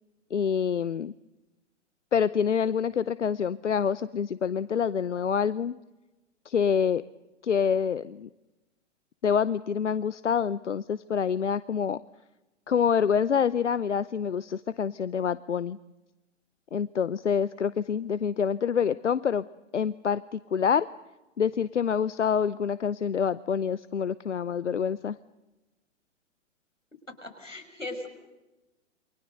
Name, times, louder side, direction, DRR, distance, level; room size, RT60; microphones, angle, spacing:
voice 1, 0.3-1.1 2.1-5.8 6.5-7.0 7.4-8.3 9.2-12.0 12.7-15.8 16.7-19.4 19.7-20.9 21.4-25.2, left 7 dB, 70° left, 17 dB, 0.8 m, -26 dB
voice 2, 27.2-28.1, left 2 dB, 85° left, 4 dB, 5.9 m, -38 dB
28.5 x 24.0 x 6.7 m, 1.0 s
figure-of-eight pair, 110°, 37 cm